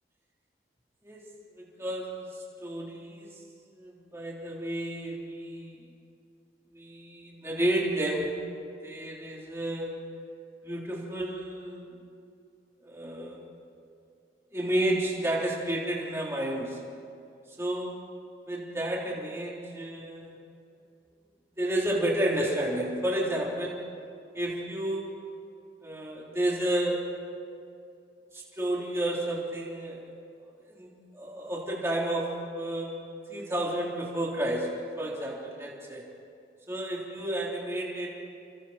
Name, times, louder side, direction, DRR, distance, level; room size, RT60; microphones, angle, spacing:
voice 1, 1.6-2.3 2.6-3.4 3.7-5.8 6.7-8.3 8.8-9.9 10.6-11.9 12.8-13.4 14.5-16.8 17.6-17.9 18.5-20.3 21.6-23.7 24.3-25.1 25.8-27.0 28.3-30.0 30.6-32.9 33.3-34.7 35.0-36.0 36.7-38.1, right 1 dB, 15° right, -4 dB, 3.7 m, -31 dB
29.5 x 24.0 x 4.4 m, 2.5 s
head